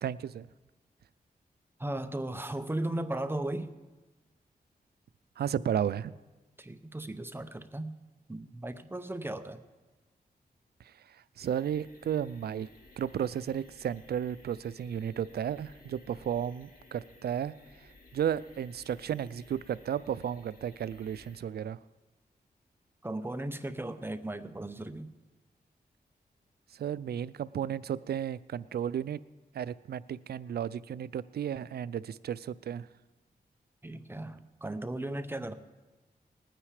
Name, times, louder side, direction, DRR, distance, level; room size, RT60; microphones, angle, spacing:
voice 1, 0.0-0.5 5.4-6.1 10.8-12.7 13.0-17.5 18.1-21.8 26.7-29.2 29.5-32.9, right 9 dB, 85° right, 18 dB, 0.4 m, -33 dB
voice 2, 1.8-3.7 6.6-7.9 8.3-9.6 23.0-25.1 33.8-35.5, right 1 dB, 15° right, 9 dB, 0.7 m, -36 dB
sound 1, 11.4-21.4, left 2 dB, 65° left, 2.1 m, -57 dB
20.0 x 9.0 x 4.9 m, 1.2 s
wide cardioid pair, 135°, 16 cm